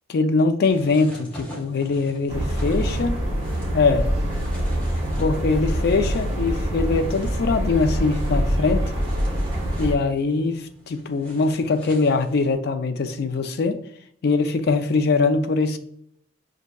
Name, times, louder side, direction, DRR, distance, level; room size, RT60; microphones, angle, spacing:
voice 1, 0.1-3.2 3.7-4.1 5.2-8.9 9.8-13.8 14.2-15.8, left 4 dB, 55° left, 0.4 m, -22 dB
sound 1, 0.7-12.5, equal, 5° left, 1.2 m, -44 dB
sound 2, 2.3-9.9, equal, 30° right, 0.8 m, -25 dB
6.2 x 2.6 x 2.2 m
head